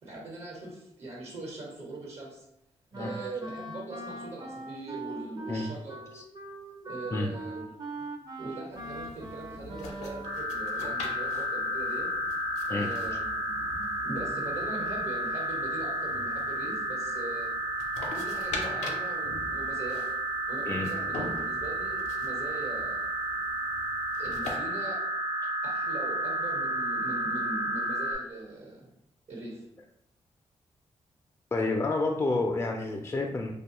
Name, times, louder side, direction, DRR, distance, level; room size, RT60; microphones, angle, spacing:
voice 1, 0.0-2.4 3.0-6.0 6.8-7.6 8.4-12.1 12.7-17.5 18.1-20.0 20.5-23.1 24.2-25.0 25.6-28.9 29.3-29.7, right 2 dB, 70° right, -3 dB, 1.1 m, -41 dB
Wind instrument woodwind instrument, 2.9-10.4, right 2 dB, 35° right, 0.5 m, -41 dB
sound 1, 8.7-24.6, left 3 dB, 85° left, 0.4 m, -44 dB
sound 2, 10.2-28.1, right 1 dB, 90° right, 0.7 m, -32 dB
voice 2, 31.5-33.5, left 2 dB, 25° left, 2 dB, 0.3 m, -29 dB
2.5 x 2.2 x 2.9 m, 0.81 s
supercardioid pair, 50°, 12 cm